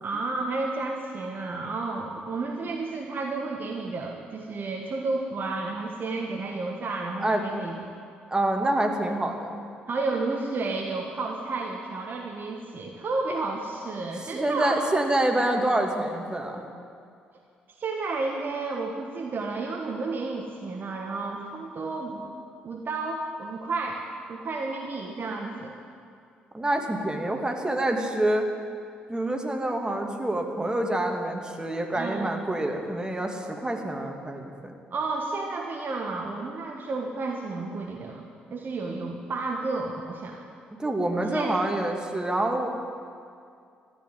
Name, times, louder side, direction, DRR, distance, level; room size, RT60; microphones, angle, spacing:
voice 1, 0.0-7.8 9.9-14.8 17.8-22.2 22.6-24.0 24.3-25.8 31.9-32.2 34.9-40.4 41.3-41.6, right 3 dB, 40° right, 1 dB, 1.5 m, -31 dB
voice 2, 8.3-9.6 14.3-16.6 26.5-28.5 29.1-34.7 40.8-42.7, right 1 dB, 15° right, 2 dB, 2.3 m, -27 dB
14.0 x 9.7 x 9.6 m, 2.3 s
figure-of-eight pair, 45°, 5 cm